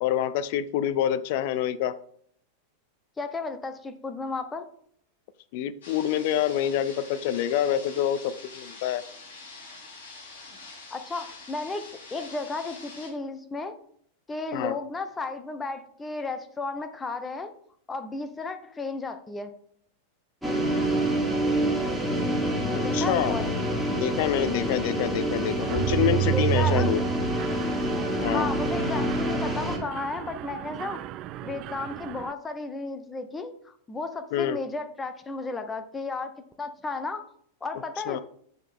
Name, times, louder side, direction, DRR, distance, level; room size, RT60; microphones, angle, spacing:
voice 1, 0.0-1.9 5.5-9.0 14.5-14.7 22.7-23.4 23.9-27.0 28.2-28.5 34.3-34.6 38.1-38.2, left 11 dB, 50° left, 14 dB, 0.6 m, -27 dB
voice 2, 3.2-4.6 10.9-13.8 14.3-17.5 17.9-19.5 22.8-23.8 26.3-26.9 28.3-31.0 31.4-36.3 36.6-37.2 37.6-38.2, left 3 dB, 15° left, 8 dB, 0.8 m, -34 dB
sound 1, 5.8-13.1, left 3 dB, 65° left, 3.5 m, -45 dB
sound 2, 20.4-29.8, right 1 dB, ahead, 2.0 m, -27 dB
Mechanisms, 25.6-32.3, right 15 dB, 40° right, 0.3 m, -31 dB
8.2 x 6.5 x 3.6 m, 0.63 s
figure-of-eight pair, 90°, 0 cm